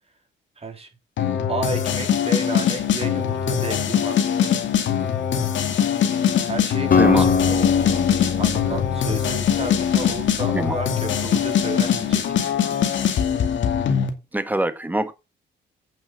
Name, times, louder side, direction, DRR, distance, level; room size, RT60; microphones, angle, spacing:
voice 1, 0.6-0.9 1.5-4.2 6.4-8.0 8.4-12.2, right 3 dB, 30° right, 3.9 m, -32 dB
sound 1, 1.2-14.1, left 8 dB, 70° left, 2.2 m, -22 dB
Acoustic guitar, 6.9-11.0, left 5 dB, 45° left, 1.1 m, -23 dB
voice 2, 6.9-7.3 10.5-10.8 14.3-15.1, right 1 dB, 10° right, 1.5 m, -23 dB
9.0 x 6.4 x 6.0 m
cardioid pair, 90°, 20 cm